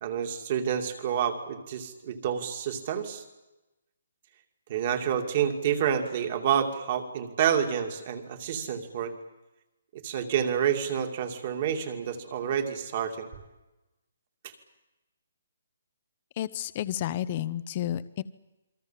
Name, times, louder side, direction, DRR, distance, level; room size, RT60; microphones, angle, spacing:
voice 1, 0.0-3.2 4.7-9.1 9.9-13.3 14.4-14.5, right 8 dB, 30° right, 6 dB, 2.7 m, -29 dB
voice 2, 16.4-18.2, left 12 dB, 25° left, 14 dB, 0.8 m, -31 dB
28.0 x 24.0 x 7.6 m, 1.0 s
hypercardioid pair, 175°, 0 cm